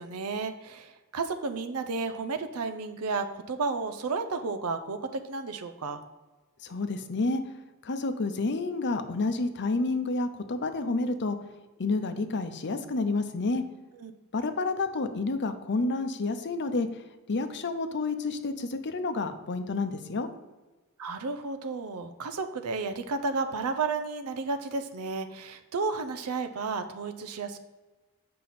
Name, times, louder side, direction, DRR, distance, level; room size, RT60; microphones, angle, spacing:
voice 1, 0.0-6.0 14.0-14.1 21.0-27.6, right 4 dB, 75° right, 8 dB, 0.6 m, -32 dB
voice 2, 6.6-7.4 7.8-11.4 11.8-13.6 14.3-16.9 17.3-20.3, left 3 dB, 55° left, 9 dB, 0.7 m, -29 dB
7.7 x 5.5 x 4.2 m, 1.2 s
head